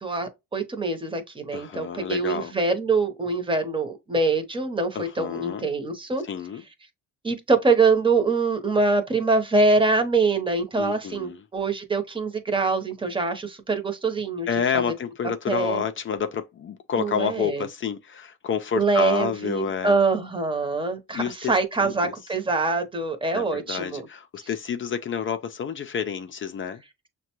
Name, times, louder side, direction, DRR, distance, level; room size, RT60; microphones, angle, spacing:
voice 1, 0.0-6.2 7.2-14.5 14.7-14.8 15.5-15.8 17.0-17.7 18.7-24.0 24.4-24.5, right 3 dB, 15° right, 0.9 m, -24 dB
voice 2, 1.5-2.5 4.9-5.7 6.2-6.6 10.8-11.4 14.5-20.0 21.1-21.5 21.8-22.1 23.3-26.8, left 7 dB, 40° left, 0.5 m, -29 dB
6.3 x 2.2 x 3.0 m
cardioid pair, 90°, 30 cm